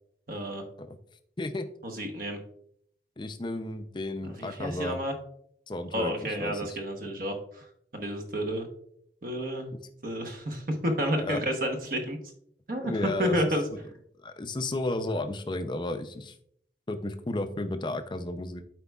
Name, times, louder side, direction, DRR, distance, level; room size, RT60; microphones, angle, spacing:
voice 1, 0.3-0.6 1.8-2.4 4.2-5.2 5.9-7.7 7.9-8.7 9.2-9.7 10.0-12.2 12.7-13.6, equal, 50° right, 4 dB, 1.0 m, -30 dB
voice 2, 3.2-5.0 5.7-6.1 6.4-6.8 11.2-11.4 12.8-13.4 14.2-16.3 16.9-18.6, left 2 dB, 25° left, 8 dB, 0.5 m, -33 dB
12.0 x 4.5 x 2.3 m, 0.68 s
head